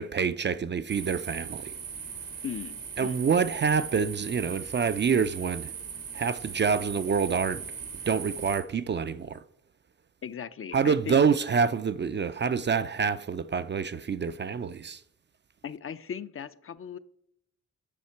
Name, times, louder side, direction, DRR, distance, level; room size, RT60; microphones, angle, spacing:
voice 1, 0.0-1.7 3.0-5.7 6.1-7.6 8.1-9.4 10.7-15.0, right 6 dB, 35° right, 0.4 m, -27 dB
sound 1, 0.9-8.6, right 6 dB, 80° right, 1.5 m, -39 dB
voice 2, 2.4-3.2 10.2-11.3 15.6-17.0, left 8 dB, 40° left, 0.4 m, -38 dB
8.5 x 5.6 x 4.5 m
cardioid pair, 65°, 33 cm